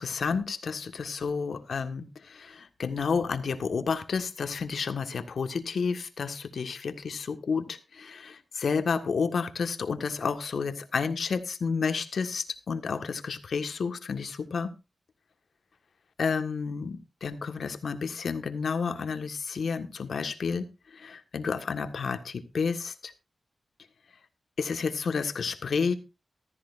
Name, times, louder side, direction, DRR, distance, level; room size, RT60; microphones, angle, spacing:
voice 1, 0.0-14.7 16.2-20.6 20.9-23.1 24.6-25.9, left 5 dB, 80° left, 8 dB, 1.6 m, -31 dB
15.5 x 13.5 x 2.6 m, 0.28 s
cardioid pair, 65°, 0 cm